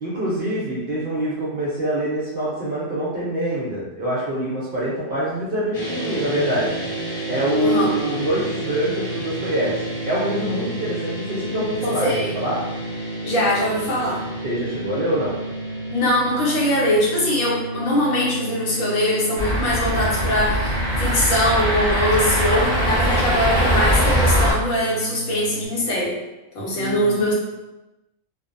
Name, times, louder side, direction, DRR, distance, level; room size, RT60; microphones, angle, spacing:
voice 1, 0.0-6.7 7.3-12.1 12.3-12.6 14.4-15.3 22.5-22.7 26.7-27.2, right 1 dB, 55° right, -7 dB, 0.7 m, -25 dB
sound 1, 5.7-25.7, right 2 dB, 35° left, 0.7 m, -31 dB
voice 2, 7.6-7.9 12.0-12.3 13.2-14.2 15.9-26.2 26.5-27.3, left 1 dB, 80° left, -4 dB, 1.2 m, -22 dB
sound 2, 19.4-24.5, equal, 5° left, 0.6 m, -21 dB
2.6 x 2.1 x 2.5 m, 1.0 s
omnidirectional pair, 1.3 m